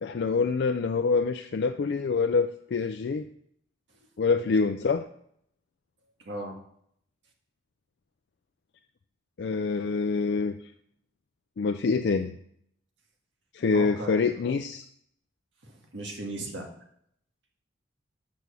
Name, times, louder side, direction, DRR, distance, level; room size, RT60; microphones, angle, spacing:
voice 1, 0.0-3.3 4.2-5.1 9.4-10.5 11.6-12.4 13.5-14.8, left 4 dB, 60° left, 8 dB, 0.4 m, -26 dB
voice 2, 6.2-6.6 13.7-14.1 15.6-16.7, right 1 dB, 70° right, 1 dB, 1.7 m, -37 dB
6.7 x 6.0 x 6.8 m, 0.69 s
head